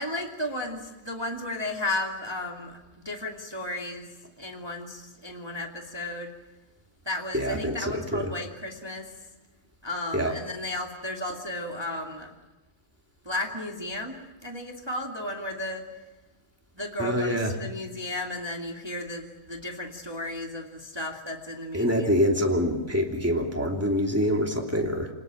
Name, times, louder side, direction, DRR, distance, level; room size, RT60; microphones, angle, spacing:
voice 1, 0.0-2.8 3.0-4.0 4.4-6.3 7.0-9.1 9.8-12.3 13.2-15.9 16.7-22.1, left 1 dB, 20° right, 1 dB, 0.6 m, -34 dB
voice 2, 7.3-8.3 10.1-10.3 17.0-17.6 21.7-25.1, equal, 5° right, 0 dB, 1.6 m, -25 dB
27.5 x 19.5 x 9.1 m, 1.1 s
omnidirectional pair, 5.1 m